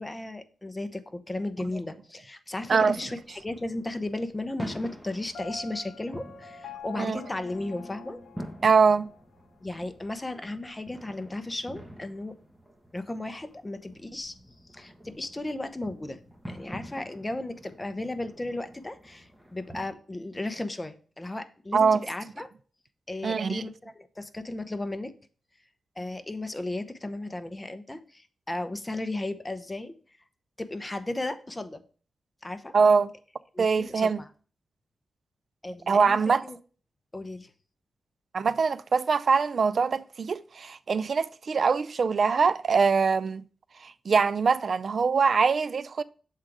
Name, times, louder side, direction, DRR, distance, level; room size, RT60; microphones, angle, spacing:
voice 1, 0.0-8.2 9.6-12.4 12.9-14.3 14.7-16.2 16.5-22.5 23.1-25.1 26.0-29.9 30.6-31.8 32.4-32.7 33.5-34.3 35.6-36.2 36.4-36.6 37.1-37.5, left 2 dB, 20° left, 0.8 m, -35 dB
sound 1, 2.6-19.9, equal, 5° right, 1.4 m, -47 dB
Piano, 5.3-9.2, left 4 dB, 80° left, 0.8 m, -44 dB
voice 2, 8.6-9.1 21.7-22.0 23.2-23.6 32.7-33.1 33.6-34.2 35.9-36.4 38.3-43.4 43.8-46.0, right 5 dB, 60° right, 0.4 m, -23 dB
7.3 x 3.8 x 4.7 m
cardioid pair, 75°, 0 cm